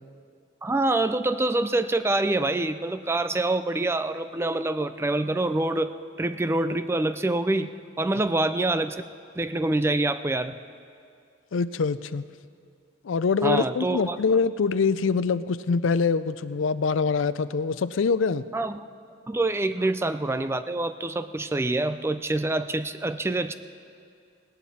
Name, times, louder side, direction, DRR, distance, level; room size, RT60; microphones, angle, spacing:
voice 1, 0.6-5.9 6.2-9.0 9.4-10.6 13.4-14.2 18.5-18.8 19.3-23.5, right 2 dB, 15° right, 11 dB, 0.4 m, -26 dB
voice 2, 11.5-12.3 13.0-18.5, left 5 dB, 85° left, 15 dB, 0.5 m, -24 dB
18.5 x 18.0 x 4.2 m, 2.3 s
head